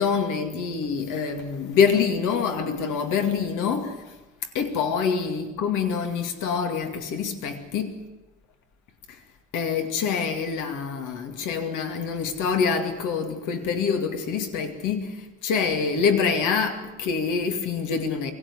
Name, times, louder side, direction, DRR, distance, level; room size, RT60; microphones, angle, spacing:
voice 1, 0.0-4.0 4.5-8.0 9.1-9.2 9.5-18.3, left 6 dB, 90° left, 2.5 m, -26 dB
23.5 x 18.0 x 9.9 m
cardioid pair, 90°, 30 cm